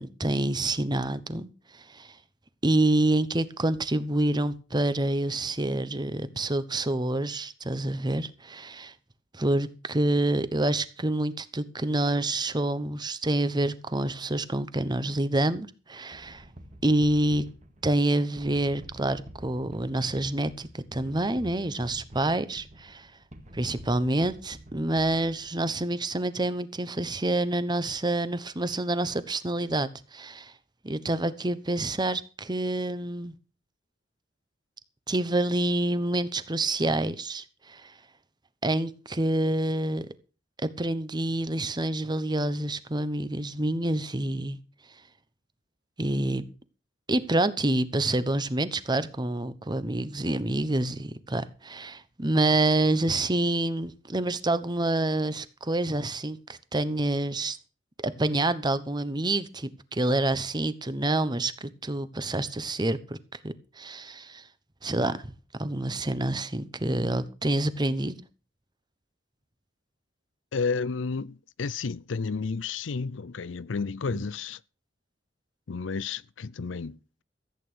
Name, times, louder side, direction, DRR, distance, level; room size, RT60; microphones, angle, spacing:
voice 1, 0.0-1.5 1.7-2.1 2.6-8.9 9.3-16.4 16.8-17.5 17.8-23.1 23.5-30.5 30.8-33.3 35.1-37.9 38.6-40.1 40.6-44.6 46.0-46.4 47.1-57.6 58.0-63.2 63.4-64.4 64.8-65.3 65.6-68.2, right 1 dB, 25° right, 1.0 m, -27 dB
sound 1, 16.1-25.7, right 1 dB, 40° right, 2.2 m, -48 dB
voice 2, 70.5-74.6 75.7-77.2, left 4 dB, 80° left, 0.5 m, -32 dB
14.5 x 9.0 x 6.3 m
head